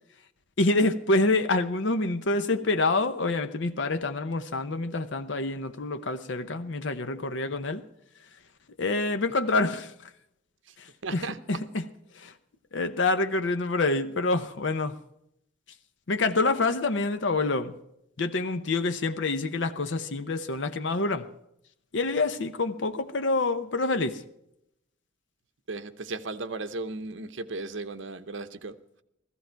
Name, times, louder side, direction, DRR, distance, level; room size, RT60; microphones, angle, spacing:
voice 1, 0.6-7.8 8.8-10.1 10.8-11.2 11.5-11.8 12.1-12.3 12.7-15.0 16.1-17.8 18.2-21.3 21.9-24.2, left 3 dB, 70° left, 0.7 m, -27 dB
voice 2, 11.0-11.4 25.7-28.8, right 3 dB, 75° right, 0.8 m, -36 dB
15.0 x 14.0 x 4.5 m
head